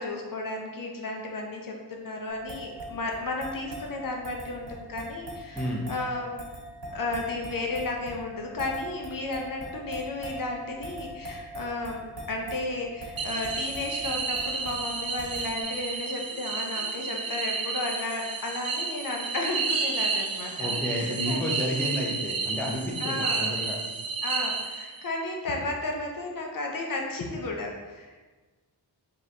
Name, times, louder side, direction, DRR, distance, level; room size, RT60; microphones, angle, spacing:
voice 1, 0.0-6.4 6.9-12.0 12.3-21.8 23.0-23.5 24.2-28.3, left 2 dB, 55° left, 1 dB, 0.6 m, -33 dB
sound 1, 2.3-15.6, right 1 dB, 85° right, 1.3 m, -41 dB
voice 2, 5.5-5.9 16.3-16.4 16.8-17.1 20.6-23.8, equal, 5° left, -3 dB, 0.5 m, -31 dB
sound 2, 13.2-25.1, right 4 dB, 60° right, 0.5 m, -31 dB
3.7 x 2.9 x 3.1 m, 1.3 s
wide cardioid pair, 120°, 41 cm